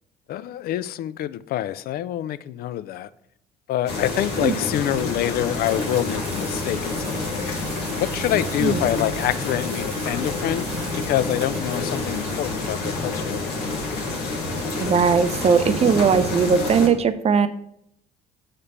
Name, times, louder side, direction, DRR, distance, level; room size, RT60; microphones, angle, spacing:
voice 1, 0.3-3.1 3.7-7.6 8.0-10.7 11.0-13.4, left 12 dB, 50° left, 0.4 m, -26 dB
sound 1, 3.9-16.9, left 3 dB, 85° left, 1.3 m, -28 dB
sound 2, 5.6-12.5, right 5 dB, 75° right, 1.2 m, -42 dB
voice 2, 14.8-17.5, right 6 dB, 35° right, 0.5 m, -19 dB
5.8 x 3.3 x 5.5 m
hypercardioid pair, 55°, 19 cm